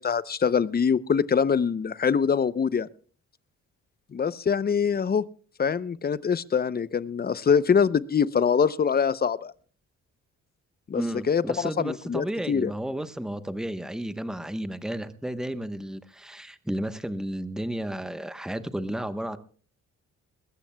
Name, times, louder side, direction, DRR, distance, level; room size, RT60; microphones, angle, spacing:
voice 1, 0.0-2.9 4.1-5.2 5.6-9.5 10.9-11.0 11.3-12.7, left 6 dB, 30° left, 18 dB, 0.6 m, -24 dB
voice 2, 10.9-19.4, right 1 dB, ahead, 11 dB, 1.0 m, -32 dB
21.0 x 16.5 x 2.2 m, 0.42 s
cardioid pair, 95°, 31 cm